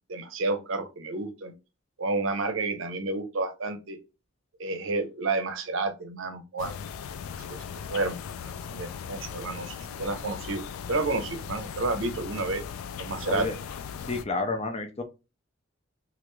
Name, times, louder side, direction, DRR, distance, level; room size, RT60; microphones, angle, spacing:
voice 1, 0.1-1.5 2.0-4.0 4.6-6.7 7.5-7.6 7.9-8.2 8.7-10.6 10.9-12.6 13.0-13.5, right 3 dB, 70° right, 9 dB, 0.6 m, -30 dB
sound 1, 6.6-14.2, left 7 dB, 90° left, 0.3 m, -38 dB
voice 2, 14.1-15.0, left 3 dB, 30° left, 6 dB, 0.5 m, -30 dB
3.2 x 2.4 x 3.0 m, 0.28 s
head